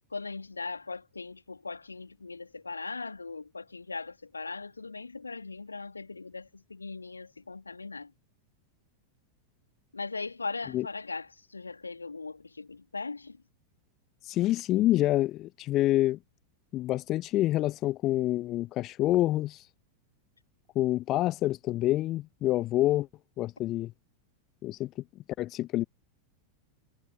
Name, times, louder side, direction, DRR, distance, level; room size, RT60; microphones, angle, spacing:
voice 1, 0.1-8.1 9.9-13.4, left 4 dB, 80° left, 2.5 m, -39 dB
voice 2, 14.2-16.2 16.7-19.7 20.8-23.1 23.4-23.9 24.6-24.9 25.4-25.9, left 15 dB, 35° left, 0.3 m, -27 dB
figure-of-eight pair, 90°, 0 cm